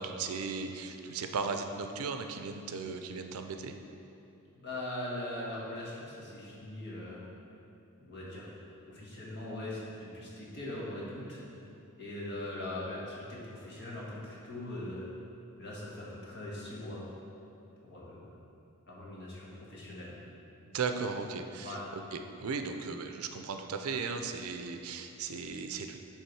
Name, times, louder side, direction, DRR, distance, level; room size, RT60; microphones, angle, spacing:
voice 1, 0.0-3.7 20.7-26.0, right 5 dB, 70° right, 6 dB, 0.4 m, -36 dB
voice 2, 4.5-7.2 8.0-8.5 8.9-11.4 12.0-15.1 15.6-17.0 17.9-18.2 18.9-20.1 21.6-21.8, left 1 dB, 50° left, -6 dB, 1.5 m, -41 dB
8.3 x 3.5 x 4.6 m, 2.7 s
head